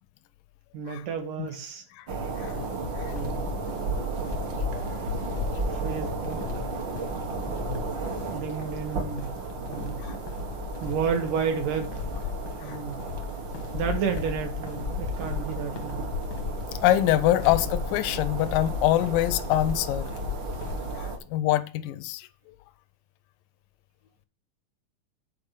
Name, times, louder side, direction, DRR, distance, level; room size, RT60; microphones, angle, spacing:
voice 1, 0.7-1.8 3.0-3.5 5.7-6.7 8.3-9.3 9.7-10.1 10.8-12.1 12.6-13.0 13.7-16.0, right 6 dB, 75° right, 2.9 m, -31 dB
sound 1, 2.1-21.2, right 4 dB, 60° right, 1.2 m, -34 dB
sound 2, 2.4-21.1, left 6 dB, 70° left, 1.1 m, -36 dB
voice 2, 16.8-20.1 21.0-22.3, left 14 dB, 90° left, 2.3 m, -24 dB
8.6 x 4.4 x 6.6 m
omnidirectional pair, 3.8 m